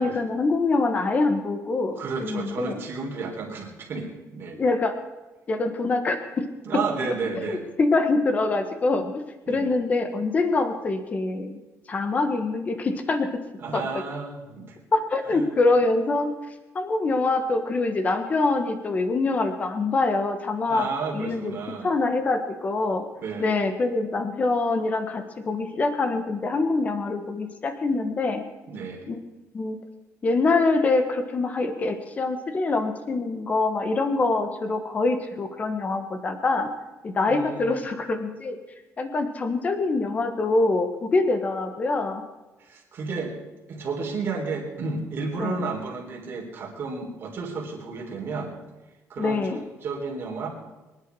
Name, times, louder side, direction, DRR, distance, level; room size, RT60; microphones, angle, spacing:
voice 1, 0.0-2.8 4.6-5.0 5.5-6.4 7.5-11.6 11.9-13.3 13.7-13.8 14.9-16.3 16.7-20.9 21.1-21.6 21.8-23.0 23.4-28.4 29.1-29.2 29.5-29.8 30.2-36.7 37.0-38.6 39.0-42.2 45.4-45.6 49.2-49.6, left 3 dB, 25° left, 8 dB, 1.4 m, -24 dB
voice 2, 2.0-4.6 6.7-7.6 9.5-9.8 13.6-14.8 15.3-15.5 20.7-21.9 23.2-23.6 28.7-29.1 37.3-37.8 42.6-43.3 43.7-48.5 49.1-50.5, right 4 dB, 40° right, -1 dB, 3.6 m, -32 dB
23.5 x 10.5 x 4.8 m, 1.1 s
cardioid pair, 170°, 6 cm